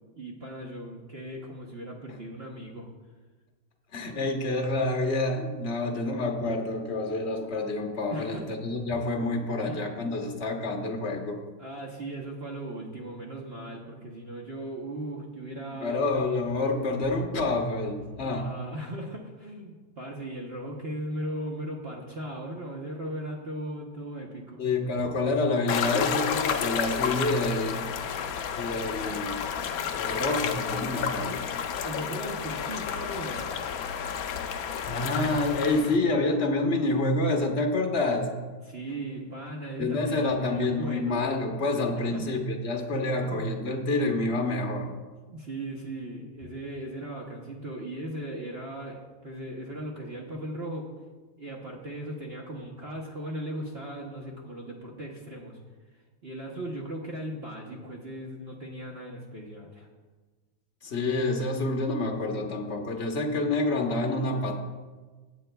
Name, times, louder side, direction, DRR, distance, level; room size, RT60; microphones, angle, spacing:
voice 1, 0.2-2.9 8.1-8.5 9.7-9.9 11.6-16.0 18.2-24.6 31.8-33.5 38.7-41.2 42.1-42.2 43.2-43.4 45.3-50.9 51.4-55.6 56.2-59.9, right 1 dB, 45° right, -1 dB, 0.8 m, -38 dB
voice 2, 3.9-11.4 15.8-18.5 24.6-27.9 28.6-29.4 30.0-31.4 34.8-38.3 39.8-44.9 60.8-64.6, left 2 dB, 45° left, 2 dB, 1.0 m, -28 dB
sound 1, 25.7-36.0, left 7 dB, 80° left, 0.8 m, -31 dB
16.5 x 9.0 x 2.3 m, 1.3 s
omnidirectional pair, 2.3 m